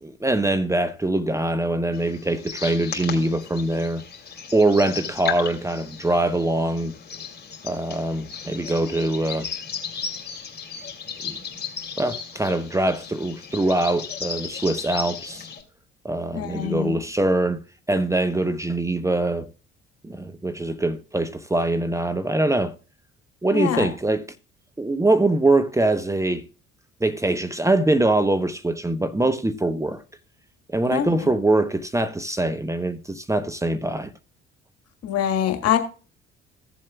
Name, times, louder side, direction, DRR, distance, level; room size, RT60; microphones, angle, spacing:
voice 1, 0.0-4.0 4.5-6.9 7.6-9.5 11.2-11.4 12.0-15.5 16.0-17.6 17.9-19.5 20.0-22.7 23.4-24.3 24.8-26.4 27.0-30.0 30.7-34.1, right 2 dB, 10° right, 0.8 m, -23 dB
sound 1, 1.9-15.6, left 6 dB, 35° left, 2.6 m, -35 dB
voice 2, 16.3-17.0 23.5-23.9 30.9-31.1 35.0-35.8, left 10 dB, 55° left, 1.7 m, -24 dB
15.5 x 7.4 x 2.3 m
hypercardioid pair, 50°, 29 cm